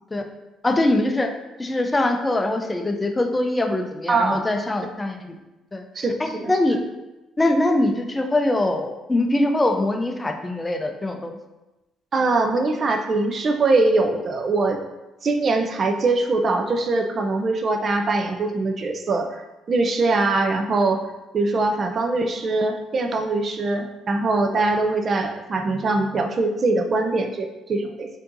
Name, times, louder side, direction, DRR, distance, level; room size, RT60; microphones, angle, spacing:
voice 1, 0.6-1.3 1.6-5.4 5.7-6.8 7.4-11.4, left 1 dB, 20° left, 5 dB, 0.5 m, -23 dB
voice 2, 4.1-4.4 6.0-6.1 6.4-6.5 12.1-14.8 15.2-19.4 19.7-21.0 21.3-28.1, right 3 dB, 45° right, 5 dB, 0.4 m, -22 dB
4.3 x 2.7 x 2.6 m, 1.0 s
supercardioid pair, 75°, 0 cm